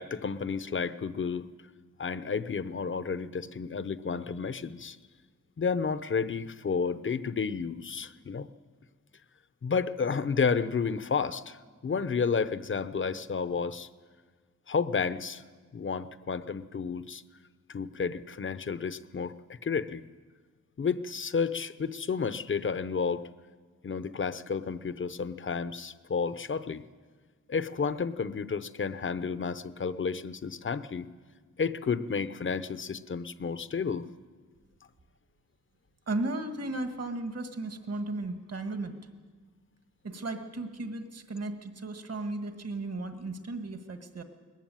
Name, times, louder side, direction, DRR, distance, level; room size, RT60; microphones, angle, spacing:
voice 1, 0.0-1.5 2.0-5.0 5.6-8.5 9.6-13.9 14.7-15.4 15.7-17.2 17.7-20.0 20.8-23.3 23.8-26.8 27.5-31.1 31.6-34.1, left 5 dB, 40° left, 13 dB, 0.7 m, -31 dB
voice 2, 36.1-39.0 40.0-44.2, right 2 dB, 50° right, 7 dB, 1.7 m, -35 dB
20.0 x 15.0 x 9.1 m, 1.5 s
wide cardioid pair, 95°, 31 cm